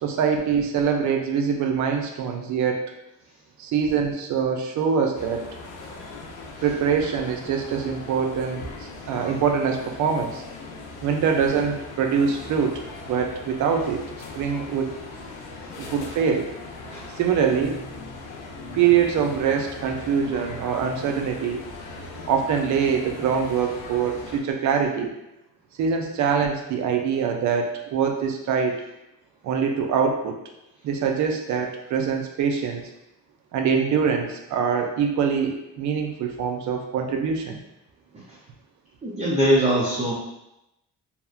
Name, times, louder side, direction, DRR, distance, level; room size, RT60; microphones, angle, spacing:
voice 1, 0.0-2.9 3.6-5.5 6.6-10.4 11.0-14.1 14.4-14.9 15.8-16.5 17.2-18.1 18.7-21.6 22.3-25.1 25.8-28.8 29.4-30.4 30.8-32.8 33.5-37.6, right 6 dB, 70° right, 3 dB, 0.5 m, -24 dB
sound 1, 5.1-24.4, left 3 dB, 85° left, 0.5 m, -39 dB
voice 2, 39.0-40.1, equal, 20° right, -6 dB, 0.5 m, -21 dB
2.7 x 2.1 x 2.3 m, 0.89 s
cardioid pair, 90°, 30 cm